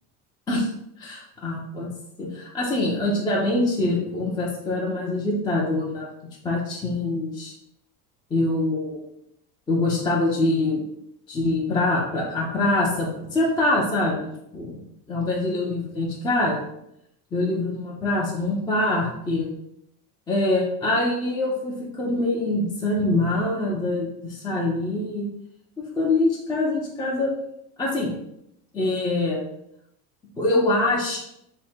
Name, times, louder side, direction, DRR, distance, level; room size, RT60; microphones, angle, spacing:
voice 1, 1.0-1.9 2.2-6.1 6.4-7.5 8.3-9.0 9.7-10.8 11.3-14.3 14.5-14.8 15.1-16.6 17.3-19.5 20.3-25.3 26.0-27.3 27.8-28.1 28.7-29.4 30.4-31.2, left 2 dB, 10° left, -4 dB, 0.3 m, -24 dB
3.5 x 2.1 x 4.2 m, 0.77 s
supercardioid pair, 135°, 45 cm